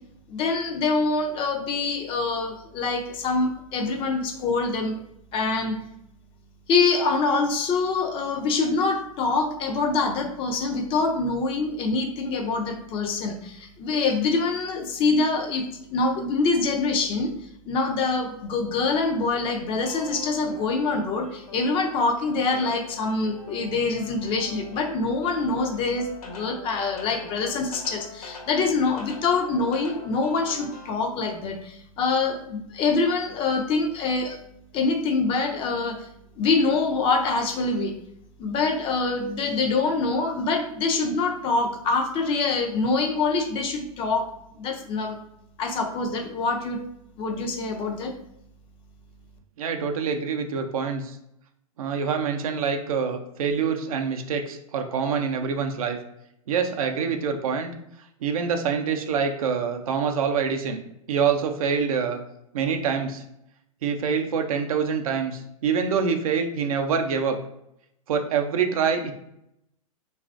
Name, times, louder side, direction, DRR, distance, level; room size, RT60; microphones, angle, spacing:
voice 1, 0.3-5.0 5.3-5.8 6.7-15.6 15.9-17.3 17.6-34.4 34.7-36.1 36.4-37.9 38.4-44.3 44.6-45.2 45.6-46.9 47.2-48.1, left 3 dB, 30° left, 4 dB, 0.4 m, -25 dB
sound 1, 19.8-30.9, left 2 dB, 75° left, 0.6 m, -44 dB
voice 2, 49.6-51.2 51.8-56.0 56.5-57.7 58.2-60.8 61.1-62.2 62.5-63.2 63.8-67.4 68.1-69.1, right 6 dB, 70° right, 5 dB, 0.5 m, -25 dB
3.1 x 2.4 x 2.4 m, 0.79 s
hypercardioid pair, 105°, 19 cm